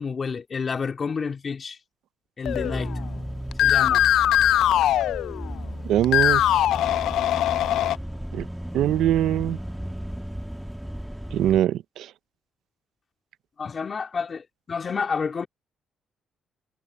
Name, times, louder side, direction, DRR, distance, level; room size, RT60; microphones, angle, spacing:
voice 1, 0.0-1.8 2.4-2.9 3.6-4.0 13.6-15.5, left 5 dB, 40° left, 2.3 m, -29 dB
sound 1, 2.4-11.6, equal, 5° right, 1.4 m, -34 dB
sound 2, 2.5-3.1 3.5-5.7 6.0-8.0, left 12 dB, 80° left, 0.4 m, -21 dB
voice 2, 5.9-6.7 8.3-8.5 8.7-9.6 11.3-12.1, right 12 dB, 80° right, 0.5 m, -23 dB
cardioid pair, 90°, 0 cm